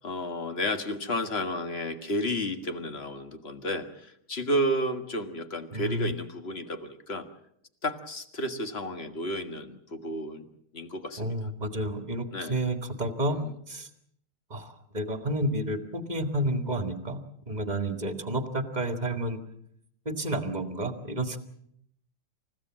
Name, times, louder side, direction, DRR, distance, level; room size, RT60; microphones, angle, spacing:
voice 1, 0.0-7.3 7.8-10.5 10.7-11.4 12.3-12.6 13.3-13.5, equal, 40° left, 7 dB, 1.9 m, -32 dB
voice 2, 5.7-6.1 11.2-13.4 13.7-13.9 14.5-17.2 17.5-19.4 20.1-21.4, right 1 dB, 25° right, 6 dB, 2.0 m, -30 dB
28.5 x 16.0 x 7.5 m, 0.73 s
omnidirectional pair, 1.8 m